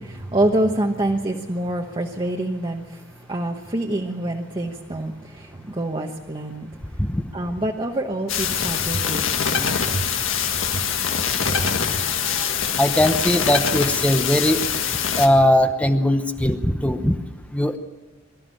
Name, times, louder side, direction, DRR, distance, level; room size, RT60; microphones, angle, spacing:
voice 1, 0.3-2.8 3.3-5.1 5.7-6.7 7.3-9.8 12.0-12.5, right 1 dB, 25° right, 1 dB, 1.1 m, -26 dB
sound 1, 8.3-15.3, left 7 dB, 85° left, 1.8 m, -24 dB
voice 2, 12.8-14.6 15.1-17.2 17.5-17.8, left 1 dB, 5° left, 7 dB, 0.9 m, -19 dB
23.0 x 13.0 x 9.0 m, 1.2 s
head